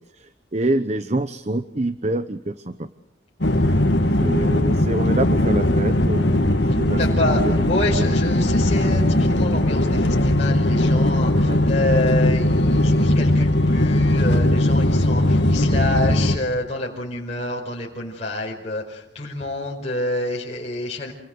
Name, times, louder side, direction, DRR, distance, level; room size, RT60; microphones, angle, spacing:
voice 1, 0.1-2.9 4.2-7.5 7.9-8.0 11.4-11.6, right 1 dB, 35° right, 11 dB, 1.0 m, -26 dB
sound 1, 3.4-16.4, left 1 dB, 60° left, 2.4 m, -19 dB
voice 2, 7.0-9.0 9.3-21.1, left 2 dB, 35° left, -3 dB, 5.1 m, -27 dB
28.5 x 23.0 x 8.0 m, 0.80 s
head